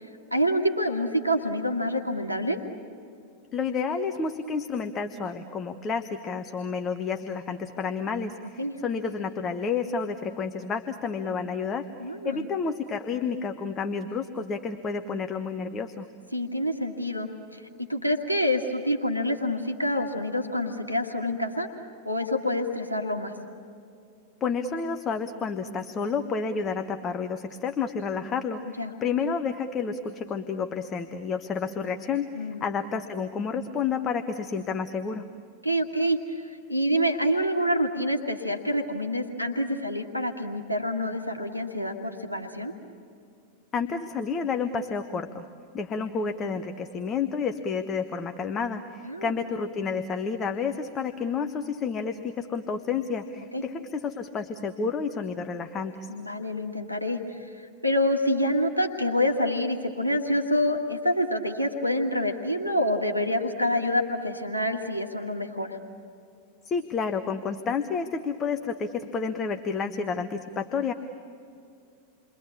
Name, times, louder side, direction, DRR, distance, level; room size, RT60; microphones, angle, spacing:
voice 1, 0.3-2.6 8.6-8.7 12.0-12.5 16.3-17.6 17.9-21.7 22.1-23.3 28.8-28.9 32.3-32.6 35.6-42.7 49.0-49.3 53.5-53.6 56.1-57.5 57.8-65.8, equal, 90° left, 3 dB, 1.7 m, -27 dB
voice 2, 3.5-11.9 12.2-16.1 24.4-35.2 43.7-45.4 45.7-56.1 66.6-70.9, left 5 dB, 25° left, 7 dB, 1.2 m, -30 dB
28.5 x 24.0 x 8.6 m, 2.5 s
figure-of-eight pair, 90°, 0 cm